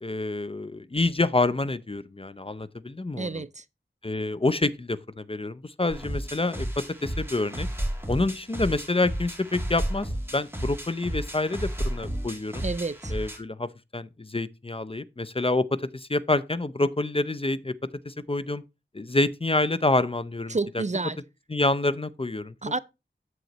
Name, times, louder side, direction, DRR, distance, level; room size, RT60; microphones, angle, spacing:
voice 1, 0.0-3.4 4.0-7.7 8.1-12.6 13.1-17.7 18.1-18.6 18.9-20.8 21.5-22.5, left 2 dB, 30° left, 0.5 m, -27 dB
voice 2, 3.2-3.6 12.6-13.1 20.5-21.2 22.6-22.8, right 3 dB, 40° right, 0.4 m, -29 dB
sound 1, 5.9-13.4, right 1 dB, 10° right, 2.3 m, -32 dB
7.8 x 7.6 x 2.9 m
wide cardioid pair, 40°, 19 cm